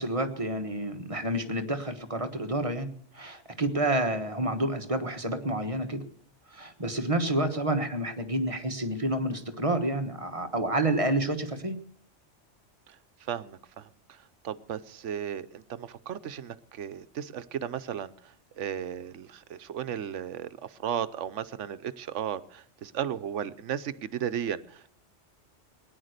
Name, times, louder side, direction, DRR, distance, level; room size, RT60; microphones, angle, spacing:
voice 1, 0.0-2.9 3.1-6.0 6.5-11.8, right 1 dB, 30° right, 7 dB, 1.3 m, -29 dB
voice 2, 13.2-14.2 14.4-24.9, right 9 dB, 80° right, 14 dB, 1.1 m, -35 dB
18.5 x 10.5 x 6.6 m, 0.62 s
omnidirectional pair, 1.2 m